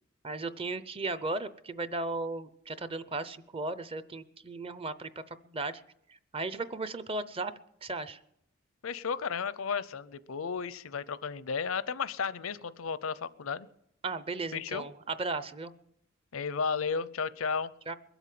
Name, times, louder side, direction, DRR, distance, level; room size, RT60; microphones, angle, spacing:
voice 1, 0.2-5.1 5.4-5.8 6.3-7.5 7.8-8.2 14.0-15.7 17.9-18.0, right 3 dB, 25° right, 14 dB, 0.6 m, -35 dB
voice 2, 8.8-13.7 14.5-14.9 16.3-17.7, left 5 dB, 90° left, 17 dB, 0.6 m, -33 dB
22.0 x 8.1 x 7.6 m, 0.78 s
head